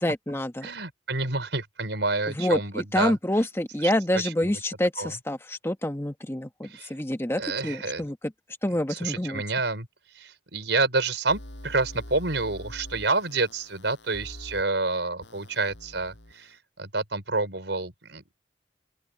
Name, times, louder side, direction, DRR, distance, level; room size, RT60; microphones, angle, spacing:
voice 1, 0.0-0.7 2.3-8.3 8.6-9.4, left 1 dB, 15° left, 1.2 m, -27 dB
voice 2, 0.6-3.1 3.8-3.9 4.4-4.5 5.0-5.1 6.6-6.9 7.4-8.1 8.7-9.9 10.1-18.3, right 3 dB, 80° right, 5.0 m, -28 dB
sound 1, 11.3-14.6 15.2-16.6, left 1 dB, 90° left, 7.3 m, -44 dB
open air
head